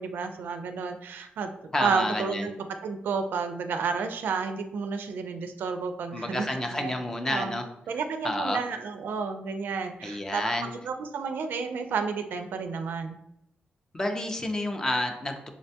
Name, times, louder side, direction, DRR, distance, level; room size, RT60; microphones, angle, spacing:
voice 1, 0.0-1.5 1.8-7.0 7.3-7.5 7.9-13.2, right 5 dB, 75° right, 7 dB, 0.4 m, -31 dB
voice 2, 1.7-2.5 6.1-7.6 8.2-8.6 10.0-10.7 13.9-15.5, left 1 dB, 15° left, 5 dB, 0.4 m, -29 dB
5.7 x 2.2 x 2.7 m, 0.81 s
wide cardioid pair, 160°, 3 cm